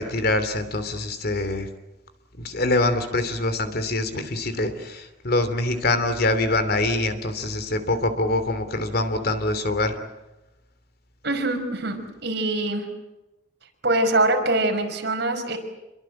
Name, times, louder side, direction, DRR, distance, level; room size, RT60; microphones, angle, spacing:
voice 1, 0.0-1.7 2.4-10.0, left 2 dB, 55° left, 10 dB, 3.0 m, -24 dB
voice 2, 11.2-12.8 13.8-15.6, right 2 dB, 60° right, 3 dB, 5.6 m, -23 dB
27.5 x 23.0 x 7.7 m, 0.99 s
head